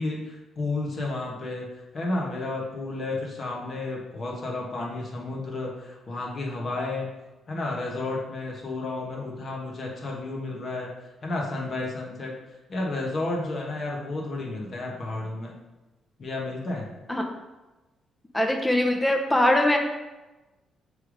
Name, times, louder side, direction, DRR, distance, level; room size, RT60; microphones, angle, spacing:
voice 1, 0.0-1.7 1.9-7.1 7.5-10.9 11.2-12.3 12.7-15.6 16.2-16.9, left 2 dB, 35° left, -2 dB, 1.2 m, -31 dB
voice 2, 18.3-19.8, left 1 dB, 5° left, 3 dB, 0.7 m, -22 dB
6.8 x 3.3 x 5.0 m, 1.1 s
cardioid pair, 155°, 0 cm